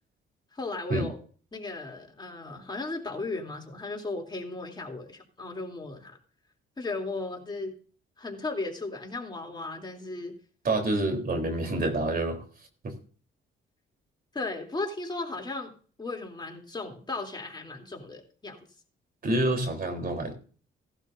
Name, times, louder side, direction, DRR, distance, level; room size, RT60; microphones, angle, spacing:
voice 1, 0.5-1.2 1.5-6.2 6.8-7.8 8.2-10.3 14.3-15.7 16.0-18.6, left 3 dB, 20° left, 1 dB, 3.1 m, -36 dB
voice 2, 10.6-12.4 12.8-12.9 19.2-20.3, right 2 dB, 45° right, 4 dB, 3.7 m, -27 dB
17.5 x 11.5 x 2.6 m, 0.41 s
cardioid pair, 90°, 20 cm